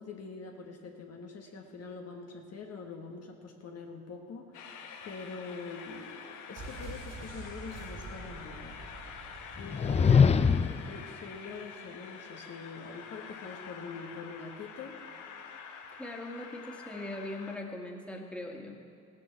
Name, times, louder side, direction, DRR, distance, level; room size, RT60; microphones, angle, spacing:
voice 1, 0.0-8.8 9.6-10.2 10.9-15.0, left 4 dB, 55° left, 2 dB, 1.5 m, -44 dB
Train, 4.5-17.6, left 6 dB, 80° left, 1.2 m, -47 dB
sound 1, 6.6-10.3 10.6-10.7, right 3 dB, 80° right, 3.9 m, -46 dB
sound 2, 9.6-10.9, left 6 dB, 20° left, 0.4 m, -23 dB
voice 2, 16.0-18.8, left 1 dB, 5° left, 0 dB, 1.9 m, -40 dB
16.5 x 7.4 x 6.9 m, 2.7 s
cardioid pair, 90°, 30 cm